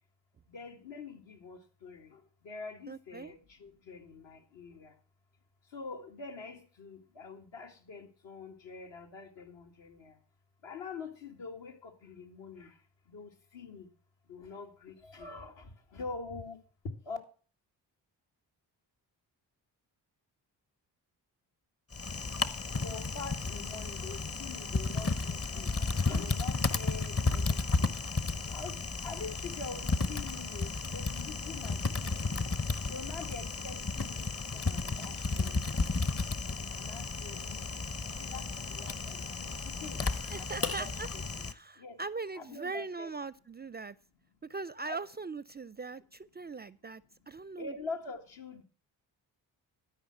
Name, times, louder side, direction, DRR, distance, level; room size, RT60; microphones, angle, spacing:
voice 1, 0.5-4.9 5.7-10.1 10.6-12.7 13.1-13.9 14.3-16.6 17.1-17.2 22.8-25.7 26.1-27.9 28.5-28.8 29.0-32.1 32.9-34.3 34.5-35.9 36.7-37.7 38.2-40.0 40.4-41.4 41.8-42.0 42.3-43.1 44.8-45.0 47.6-48.6, left 4 dB, 70° left, 3 dB, 2.2 m, -45 dB
voice 2, 2.9-3.3 40.3-41.1 41.4-44.0 44.4-47.7, right 4 dB, 25° right, 19 dB, 0.4 m, -40 dB
Typing, 21.9-41.5, left 3 dB, 30° left, 0.9 m, -33 dB
12.5 x 5.2 x 7.7 m, 0.40 s
supercardioid pair, 45°, 46 cm